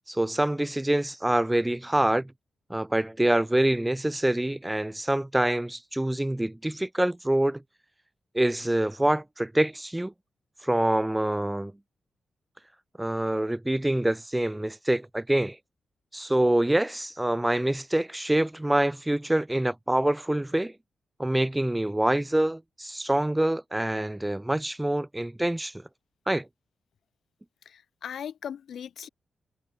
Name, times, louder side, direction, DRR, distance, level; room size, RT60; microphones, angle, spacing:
voice 1, 0.1-2.3 2.7-7.6 8.3-10.1 10.6-11.7 13.0-15.6 16.1-20.7 21.2-25.8 26.3-26.5, right 1 dB, 10° right, 0.4 m, -26 dB
voice 2, 27.6-29.1, left 8 dB, 75° left, 0.9 m, -38 dB
wide cardioid pair, 125°, 0 cm